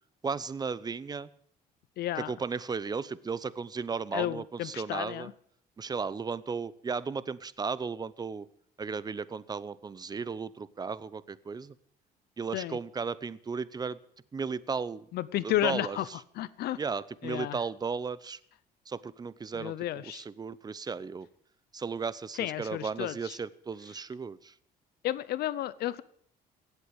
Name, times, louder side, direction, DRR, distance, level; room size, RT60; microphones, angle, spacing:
voice 1, 0.2-1.3 2.2-5.3 5.8-8.5 8.8-11.7 12.4-14.0 14.3-15.1 15.4-16.2 16.8-18.4 18.9-21.3 21.7-24.5, right 5 dB, 25° right, 18 dB, 0.8 m, -35 dB
voice 2, 2.0-2.3 4.1-5.3 12.5-12.8 15.1-16.1 16.4-16.8 17.2-17.6 19.6-20.2 22.4-23.4 25.0-26.0, left 13 dB, 70° left, 18 dB, 0.7 m, -32 dB
17.0 x 8.1 x 8.7 m, 0.63 s
cardioid pair, 110°, 17 cm